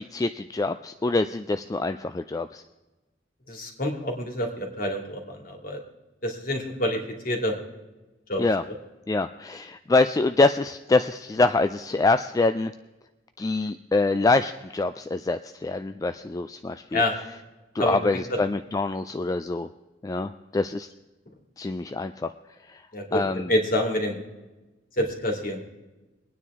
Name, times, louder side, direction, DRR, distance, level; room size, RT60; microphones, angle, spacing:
voice 1, 0.0-2.6 8.4-8.6 9.1-12.7 13.4-17.0 17.7-19.7 20.0-20.9 21.6-22.3 22.7-22.8 23.1-23.5, left 3 dB, 20° left, 9 dB, 0.3 m, -25 dB
voice 2, 3.5-5.8 6.2-7.6 8.3-8.4 8.7-8.8 16.9-17.1 17.8-18.4 21.3-21.4 22.9-24.2 25.0-25.6, left 1 dB, 50° left, 2 dB, 2.4 m, -27 dB
23.0 x 9.5 x 3.6 m, 1.1 s
head